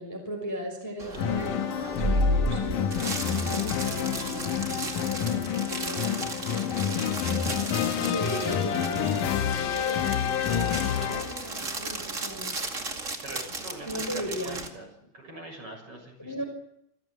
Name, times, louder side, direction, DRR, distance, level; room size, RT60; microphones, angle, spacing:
voice 1, 0.0-7.6 8.0-12.6 13.9-14.6 16.2-16.4, equal, 5° left, 2 dB, 5.2 m, -38 dB
sound 1, 1.0-14.7, right 1 dB, 45° right, 0.9 m, -33 dB
sound 2, 1.2-11.6, left 9 dB, 80° left, 1.8 m, -28 dB
voice 2, 13.2-16.3, right 1 dB, 25° right, 1 dB, 7.5 m, -43 dB
27.5 x 15.0 x 9.0 m, 0.76 s
omnidirectional pair, 5.6 m